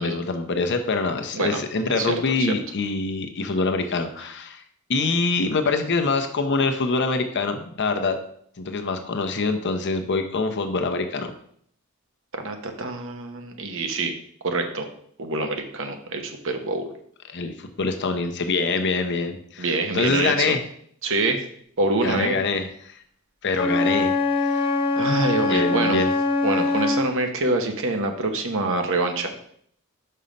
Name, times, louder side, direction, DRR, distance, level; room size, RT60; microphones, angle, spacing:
voice 1, 0.0-4.6 4.9-8.2 8.6-11.3 17.3-20.6 22.0-23.0 23.4-24.7 25.5-26.1, left 3 dB, 55° left, 6 dB, 0.8 m, -25 dB
voice 2, 1.9-2.5 12.3-14.1 14.4-14.9 15.2-16.9 19.6-20.6 21.0-21.4 21.8-22.4 25.0-26.0 26.4-29.3, right 2 dB, 65° right, 5 dB, 1.0 m, -26 dB
Wind instrument woodwind instrument, 23.5-27.1, left 3 dB, 25° left, 0.9 m, -23 dB
5.6 x 5.5 x 5.1 m, 0.64 s
head